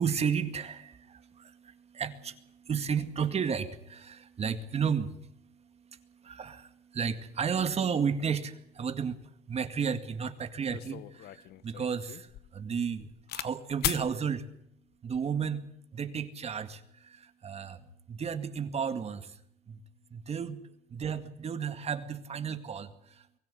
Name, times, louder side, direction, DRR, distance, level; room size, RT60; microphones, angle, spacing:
voice 1, 0.0-14.5 15.0-19.4 19.7-19.8 20.1-20.6 20.9-23.3, right 6 dB, 40° right, 10 dB, 2.1 m, -33 dB
sound 1, 10.1-10.2 10.7-13.5 13.8-14.1 14.9-15.3, left 14 dB, 70° left, 1.0 m, -37 dB
24.0 x 15.5 x 9.7 m, 0.74 s
cardioid pair, 110°, 17 cm